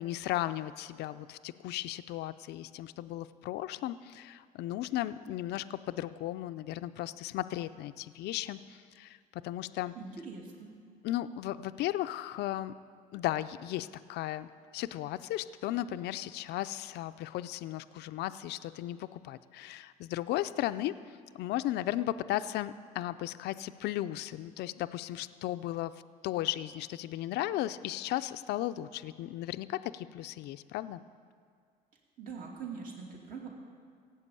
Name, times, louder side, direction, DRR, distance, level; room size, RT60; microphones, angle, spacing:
voice 1, 0.0-9.9 11.0-12.7 13.1-25.9 26.2-31.0, left 14 dB, 80° left, 13 dB, 0.5 m, -35 dB
voice 2, 9.9-10.7 32.2-33.5, right 5 dB, 55° right, -1 dB, 2.6 m, -43 dB
16.5 x 8.2 x 8.3 m, 2.1 s
cardioid pair, 110°, 17 cm